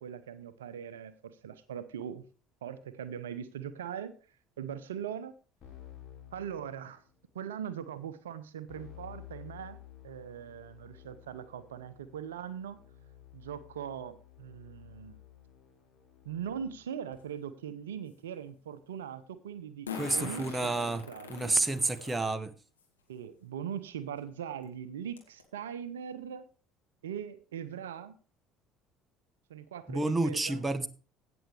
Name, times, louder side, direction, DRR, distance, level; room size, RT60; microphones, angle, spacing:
voice 1, 0.0-2.2 2.6-4.1 4.6-5.3 6.3-7.0 7.3-9.8 10.0-12.8 13.3-15.2 16.2-21.6 23.1-26.5 27.0-28.1 29.5-30.7, right 8 dB, 75° right, 0.6 m, -41 dB
Keyboard (musical), 5.6-7.3 8.7-17.1, left 12 dB, 45° left, 2.9 m, -53 dB
Fart, 17.1-17.2 19.9-22.2 22.8-22.9 24.2-24.3 24.6-24.7 25.2-25.4, left 6 dB, 80° left, 2.2 m, -42 dB
voice 2, 19.9-21.0 21.3-22.5 29.9-30.9, right 2 dB, 15° right, 1.0 m, -29 dB
16.5 x 7.0 x 3.3 m
figure-of-eight pair, 60°, 0 cm